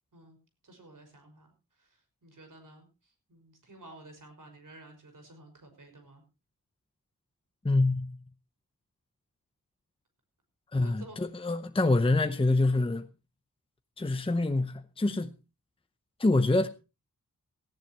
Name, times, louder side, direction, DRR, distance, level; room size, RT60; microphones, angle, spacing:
voice 1, 0.6-6.2 10.7-11.2, right 2 dB, 60° right, 5.7 m, -53 dB
voice 2, 7.6-8.2 10.7-13.1 14.0-15.4 16.2-16.7, left 2 dB, 15° left, 0.7 m, -26 dB
18.0 x 14.5 x 3.0 m
wide cardioid pair, 125°, 36 cm